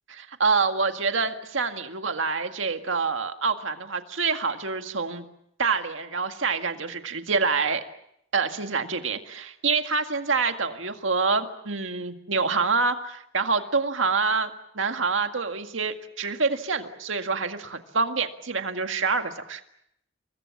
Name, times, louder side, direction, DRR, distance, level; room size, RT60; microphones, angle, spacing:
voice 1, 0.3-5.2 5.6-7.8 8.3-19.6, right 4 dB, 70° right, 6 dB, 2.0 m, -26 dB
28.5 x 22.5 x 7.3 m, 0.75 s
head